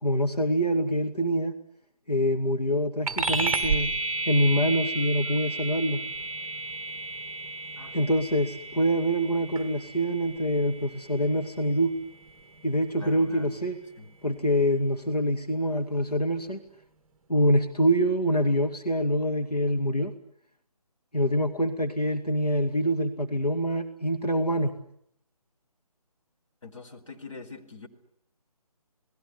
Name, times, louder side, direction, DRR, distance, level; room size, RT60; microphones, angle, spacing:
voice 1, 0.0-1.5 2.1-3.9 4.3-6.0 7.9-11.9 12.6-13.8 14.2-16.6 17.3-20.1 21.1-24.7, equal, 85° left, 5 dB, 2.3 m, -25 dB
sound 1, 3.1-12.9, right 3 dB, 10° right, 1.7 m, -33 dB
voice 2, 13.0-13.6 14.0-14.1 26.6-27.9, left 3 dB, 55° left, 3 dB, 4.4 m, -43 dB
29.0 x 20.0 x 9.8 m, 0.71 s
figure-of-eight pair, 150°, 20 cm